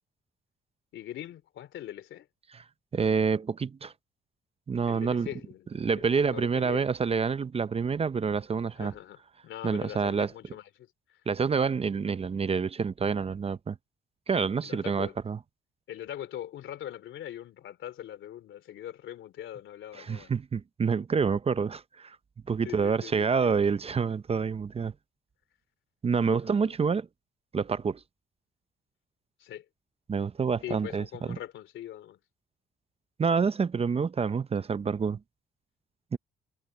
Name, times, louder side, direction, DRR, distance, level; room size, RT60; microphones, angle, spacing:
voice 1, 0.9-2.3 4.8-6.9 8.7-11.2 14.6-15.2 15.9-20.3 22.6-23.5 26.1-26.6 29.4-29.6 30.6-32.2, left 11 dB, 75° left, 3.0 m, -42 dB
voice 2, 2.9-3.9 4.7-5.3 5.8-8.9 9.6-10.3 11.3-13.8 14.3-15.4 20.0-22.2 22.5-24.9 26.0-27.1 27.5-28.0 30.1-31.0 33.2-35.2 36.1-36.2, right 5 dB, 30° right, 0.6 m, -27 dB
cardioid pair, 90°, 20 cm